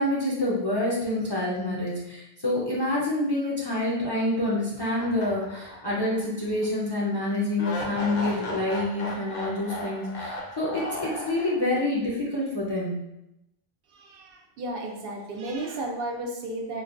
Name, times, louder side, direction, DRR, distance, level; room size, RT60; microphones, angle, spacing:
voice 1, 0.0-12.9, left 1 dB, 30° left, -6 dB, 0.5 m, -27 dB
sound 1, 5.0-6.3 6.6-6.7 7.6-11.9, left 1 dB, 65° left, 0.7 m, -36 dB
voice 2, 13.9-16.8, right 1 dB, 70° right, 0 dB, 0.7 m, -33 dB
3.9 x 2.2 x 2.4 m, 0.87 s
omnidirectional pair, 1.0 m